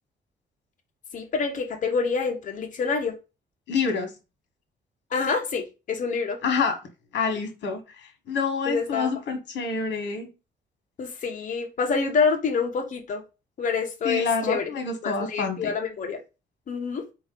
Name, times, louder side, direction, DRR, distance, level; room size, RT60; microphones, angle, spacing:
voice 1, 1.1-3.1 5.1-6.4 8.6-9.1 11.0-13.2 13.6-14.7 15.0-16.2 16.7-17.0, left 5 dB, 45° left, 4 dB, 1.0 m, -27 dB
voice 2, 3.7-4.1 6.4-6.8 7.1-7.8 8.3-10.3 14.0-15.7, left 5 dB, 70° left, 5 dB, 1.4 m, -27 dB
4.5 x 3.0 x 3.7 m, 0.29 s
cardioid pair, 170°, 19 cm